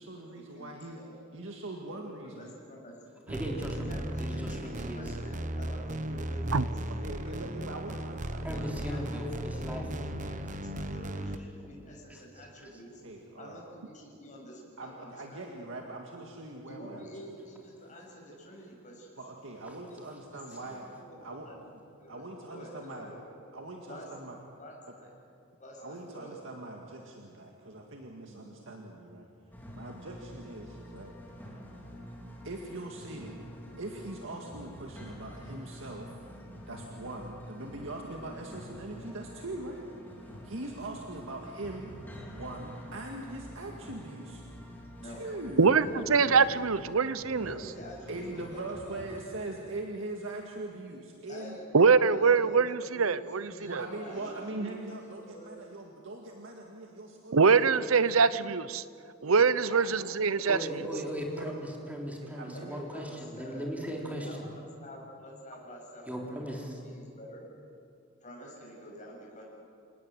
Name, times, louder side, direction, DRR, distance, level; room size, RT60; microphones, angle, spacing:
voice 1, 0.0-1.0 1.3-2.6 6.9-9.2 13.0-13.6 14.8-17.0 19.2-20.9 21.2-21.5 21.7-21.8 22.1-23.1 23.5-24.4 25.8-29.3 29.7-31.1 32.4-33.4 33.8-36.1 36.7-39.9 40.1-41.9 42.3-44.4 45.0-45.7 48.1-51.6 53.6-57.4 57.7-58.0 59.2-60.1 60.6-61.0 61.3-61.6 62.2-63.1, right 2 dB, 65° right, 1 dB, 2.0 m, -42 dB
voice 2, 0.5-1.3 1.9-2.9 3.7-7.4 8.6-9.1 9.5-10.5 10.7-12.9 13.4-15.6 16.7-19.1 20.5-21.6 22.0-23.2 23.9-24.1 24.6-25.2 25.6-26.4 28.3-28.5 30.0-30.1 45.0-45.3 45.5-46.4 47.4-49.2 51.3-54.7 55.1-55.5 62.5-67.4 68.2-69.4, equal, 40° left, -2 dB, 7.3 m, -48 dB
voice 3, 3.3-5.0 8.4-10.0 11.7-12.2 19.7-19.8 60.4-64.3 66.1-66.8, equal, 5° right, -1 dB, 3.6 m, -38 dB
sound 1, 3.3-11.4, right 1 dB, 40° right, 1.1 m, -36 dB
sound 2, 29.5-49.2, equal, 10° left, 3.9 m, -47 dB
voice 4, 45.6-47.5 51.7-53.8 57.3-58.8 59.2-60.6, right 5 dB, 85° right, 16 dB, 0.8 m, -23 dB
29.0 x 18.5 x 7.9 m, 2.5 s
head